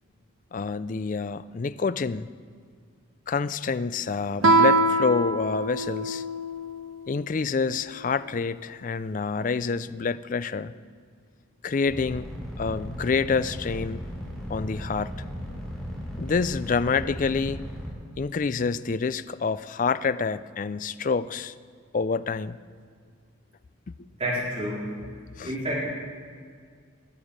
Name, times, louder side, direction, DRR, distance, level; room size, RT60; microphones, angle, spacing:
voice 1, 0.5-2.3 3.3-6.2 7.1-10.7 11.6-12.3 12.6-14.0 14.5-15.2 16.2-17.6 18.2-21.5 21.9-22.6 25.4-25.5, left 5 dB, 40° left, 15 dB, 0.4 m, -27 dB
Guitar, 4.4-6.9, right 2 dB, 80° right, 0.9 m, -23 dB
sound 1, 11.9-17.9, equal, ahead, 2.8 m, -36 dB
voice 2, 24.2-24.8 25.4-25.9, equal, 30° right, -6 dB, 4.1 m, -29 dB
20.5 x 7.1 x 6.5 m, 2.1 s
head